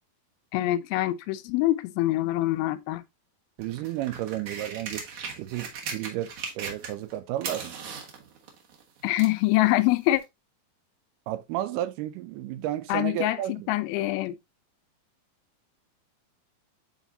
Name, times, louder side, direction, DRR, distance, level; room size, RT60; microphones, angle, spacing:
voice 1, 0.5-3.0 9.0-10.2 12.9-13.4 13.7-14.4, left 16 dB, 85° left, 2.4 m, -24 dB
sound 1, 3.6-7.1 7.4-9.4 10.2-10.3, right 6 dB, 60° right, 2.4 m, -38 dB
voice 2, 3.6-5.1 5.4-8.0 11.3-13.7, right 13 dB, 80° right, 1.9 m, -32 dB
9.0 x 4.1 x 2.6 m
omnidirectional pair, 4.3 m